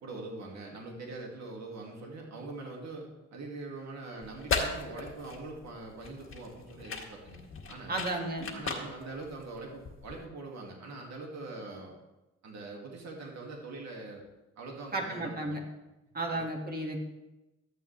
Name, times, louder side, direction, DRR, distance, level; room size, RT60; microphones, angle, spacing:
voice 1, 0.0-7.4 7.7-8.0 8.5-12.0 12.4-14.2 14.6-15.6 16.2-16.4, right 3 dB, 60° right, 0 dB, 2.3 m, -43 dB
sound 1, 4.2-10.2, left 4 dB, 45° left, 1.9 m, -37 dB
voice 2, 7.9-8.5 14.9-15.6 16.1-17.0, right 2 dB, 30° right, 1 dB, 2.1 m, -33 dB
12.5 x 8.3 x 3.4 m, 1.0 s
cardioid pair, 90°, 30 cm